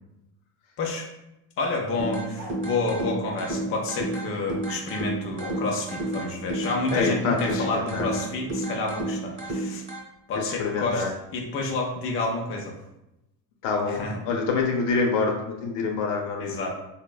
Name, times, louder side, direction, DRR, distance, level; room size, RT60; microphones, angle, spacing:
voice 1, 0.8-1.1 1.6-9.8 10.3-11.0 11.3-12.8 13.9-14.2 16.4-16.7, left 3 dB, 30° left, 0 dB, 0.4 m, -29 dB
sound 1, 2.0-10.0, right 2 dB, 15° right, 1.0 m, -32 dB
sound 2, 2.4-3.0 5.4-5.6 7.5-7.7, right 2 dB, 35° right, 0.7 m, -40 dB
voice 2, 6.9-8.1 10.4-11.1 13.6-16.6, left 4 dB, 75° left, 1 dB, 0.7 m, -26 dB
3.5 x 2.0 x 2.2 m, 0.91 s
cardioid pair, 125°, 45 cm